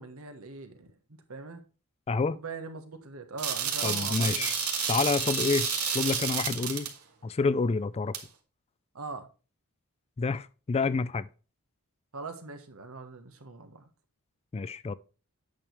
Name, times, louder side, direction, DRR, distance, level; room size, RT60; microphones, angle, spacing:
voice 1, 0.0-1.6 2.3-4.6 8.9-9.3 12.1-13.9, right 3 dB, 70° right, 1.4 m, -41 dB
sound 1, 3.4-6.9 8.1-8.2, right 8 dB, 85° right, 1.5 m, -30 dB
sound 2, 3.8-6.3, left 4 dB, 80° left, 2.3 m, -38 dB
voice 2, 3.8-4.5 4.9-5.7 5.9-6.9 7.2-8.1 10.2-11.3 14.5-14.9, left 4 dB, 25° left, 0.3 m, -28 dB
8.9 x 6.4 x 3.3 m
head